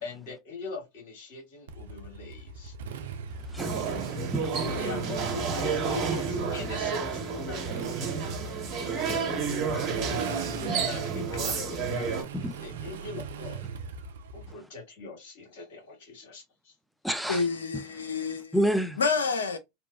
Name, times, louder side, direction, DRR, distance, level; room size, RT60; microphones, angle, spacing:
voice 1, 0.0-2.7 4.8-8.5 10.7-12.2 12.6-13.6 14.3-16.7, left 4 dB, 65° left, 1.6 m, -41 dB
Motorcycle, 1.7-14.5, right 5 dB, 75° right, 0.4 m, -39 dB
voice 2, 3.5-4.5 8.7-9.9 12.3-12.6 17.0-17.5 17.7-18.1 18.5-19.0, equal, ahead, 0.4 m, -32 dB
sound 1, 3.6-12.2, right 5 dB, 45° right, 1.0 m, -31 dB
voice 3, 17.3-18.5 19.0-19.6, left 4 dB, 85° left, 0.5 m, -28 dB
2.9 x 2.2 x 2.3 m
hypercardioid pair, 85°, 0 cm